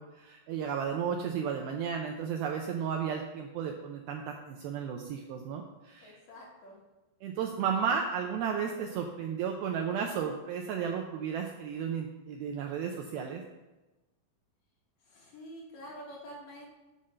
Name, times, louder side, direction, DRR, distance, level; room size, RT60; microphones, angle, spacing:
voice 1, 0.0-6.2 7.2-13.4, right 7 dB, 80° right, 2 dB, 2.2 m, -33 dB
voice 2, 6.0-6.8 15.0-16.7, equal, 60° left, -3 dB, 2.8 m, -47 dB
8.2 x 5.6 x 6.4 m, 1.1 s
omnidirectional pair, 5.0 m